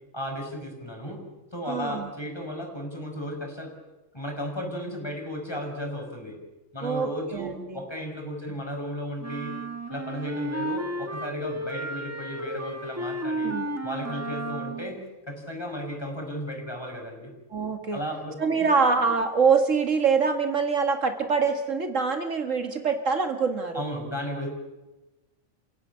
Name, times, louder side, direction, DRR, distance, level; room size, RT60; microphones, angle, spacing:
voice 1, 0.1-1.2 1.5-3.7 4.1-6.3 6.7-9.5 9.9-13.5 13.8-15.0 15.3-17.3 17.9-18.7 23.7-24.5, equal, 20° left, 2 dB, 6.0 m, -34 dB
voice 2, 1.6-2.1 6.8-7.8 13.4-13.7 17.5-18.0 18.4-23.8, right 5 dB, 70° right, 6 dB, 2.2 m, -24 dB
sound 1, 9.2-15.0, right 1 dB, 10° right, 1.4 m, -33 dB
28.0 x 16.5 x 9.7 m, 1.1 s
omnidirectional pair, 1.4 m